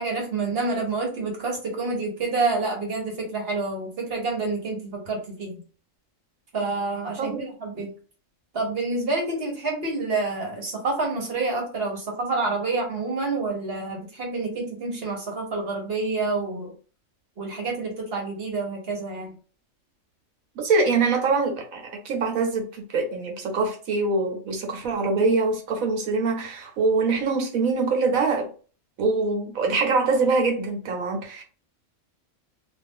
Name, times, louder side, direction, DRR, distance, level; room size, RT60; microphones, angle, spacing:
voice 1, 0.0-5.5 6.5-7.9 8.5-16.7 17.4-19.3, right 3 dB, 50° right, 1.2 m, -28 dB
voice 2, 7.2-7.5 20.6-28.5 29.0-31.4, right 3 dB, 85° right, 1.3 m, -24 dB
2.7 x 2.5 x 3.5 m
omnidirectional pair, 1.4 m